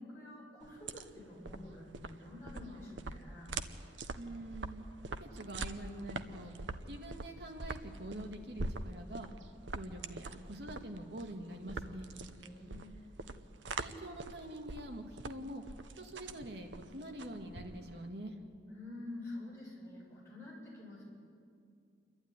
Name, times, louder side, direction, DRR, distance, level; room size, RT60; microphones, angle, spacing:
voice 1, 0.0-3.5 12.3-13.1 18.7-21.0, left 2 dB, 15° left, -6 dB, 7.0 m, -48 dB
sound 1, 0.6-18.1, right 3 dB, 85° right, 0.9 m, -44 dB
voice 2, 4.1-6.5 6.9-9.3 9.7-12.1 13.8-15.6 16.0-18.4, right 1 dB, 65° right, 3 dB, 2.2 m, -45 dB
28.0 x 12.0 x 9.9 m, 2.4 s
head